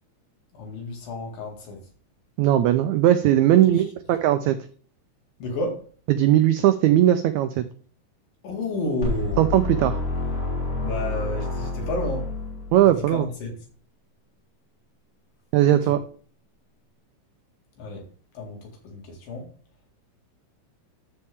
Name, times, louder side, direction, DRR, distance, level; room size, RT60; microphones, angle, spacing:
voice 1, 0.5-1.8 3.6-3.8 5.4-5.8 8.4-9.4 10.8-12.3 13.1-13.6 15.7-15.9 17.8-18.0 18.4-19.5, left 2 dB, 80° left, 2 dB, 3.9 m, -31 dB
voice 2, 2.4-4.6 6.1-7.6 9.4-10.0 12.7-13.3 15.5-16.0, right 12 dB, 85° right, 10 dB, 1.6 m, -19 dB
sound 1, 9.0-13.0, left 2 dB, 20° left, 2.2 m, -28 dB
13.0 x 5.4 x 3.6 m, 0.43 s
omnidirectional pair, 3.9 m